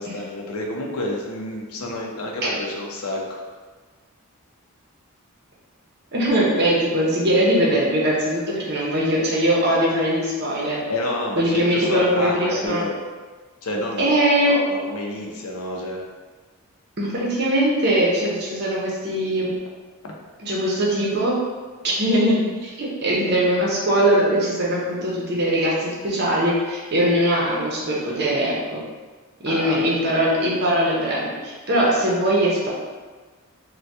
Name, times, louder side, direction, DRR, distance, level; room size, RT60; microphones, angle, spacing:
voice 1, 0.0-3.4 10.9-12.9 13.6-16.0 20.0-20.1 29.5-30.0, left 1 dB, 75° left, -1 dB, 0.6 m, -29 dB
voice 2, 6.1-10.8 11.4-12.9 14.0-14.6 17.0-19.6 20.4-21.4 21.8-28.8 29.4-32.7, right 1 dB, 45° right, -4 dB, 0.7 m, -21 dB
2.7 x 2.2 x 3.4 m, 1.4 s
head